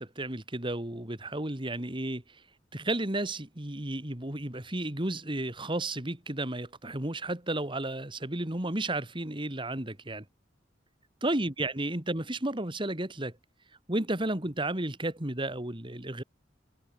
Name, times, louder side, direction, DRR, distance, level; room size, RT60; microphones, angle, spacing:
voice 1, 0.0-2.2 2.7-10.2 11.2-13.3 13.9-16.2, right 1 dB, 25° right, 2.5 m, -33 dB
head